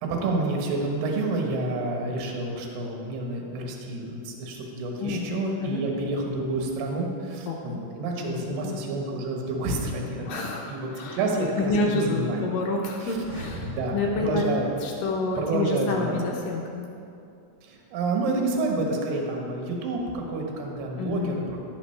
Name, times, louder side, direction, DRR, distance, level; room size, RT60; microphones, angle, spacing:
voice 1, 0.0-12.4 13.0-13.2 13.6-14.7 15.4-16.3 17.6-21.6, right 2 dB, 70° right, 0 dB, 2.7 m, -29 dB
voice 2, 7.5-7.8 8.2-8.8 10.3-14.5 14.8-16.9 21.0-21.6, left 3 dB, 75° left, 0 dB, 2.1 m, -29 dB
sound 1, 13.0-15.8 16.1-16.2, equal, 45° right, 1.8 m, -41 dB
16.0 x 5.8 x 3.3 m, 2.6 s
omnidirectional pair, 4.6 m